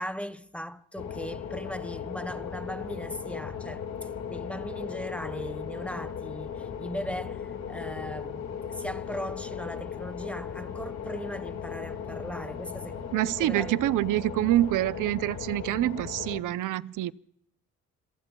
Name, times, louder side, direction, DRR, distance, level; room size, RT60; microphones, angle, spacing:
voice 1, 0.0-3.8 4.3-13.1 13.4-13.7, equal, 5° left, 0.5 m, -38 dB
sound 1, 1.0-16.4, left 7 dB, 55° left, 1.9 m, -37 dB
voice 2, 13.1-17.1, right 15 dB, 85° right, 0.6 m, -26 dB
26.5 x 23.0 x 2.3 m
cardioid pair, 170°, 31 cm